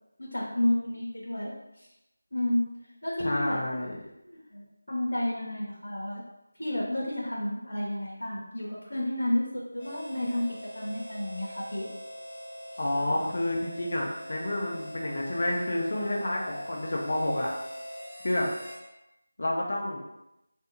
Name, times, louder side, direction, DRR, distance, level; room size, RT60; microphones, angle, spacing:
voice 1, 0.2-1.9 2.3-2.6 3.0-3.6 4.2-6.2 6.6-11.9, left 1 dB, 85° left, -5 dB, 0.8 m, -31 dB
voice 2, 3.2-4.0 12.8-17.5 18.2-18.5 19.4-20.0, left 1 dB, 55° left, -2 dB, 0.7 m, -29 dB
Harmonica, 9.7-18.8, equal, 15° left, 1.1 m, -43 dB
2.7 x 2.3 x 3.8 m, 0.89 s
figure-of-eight pair, 170°, 0 cm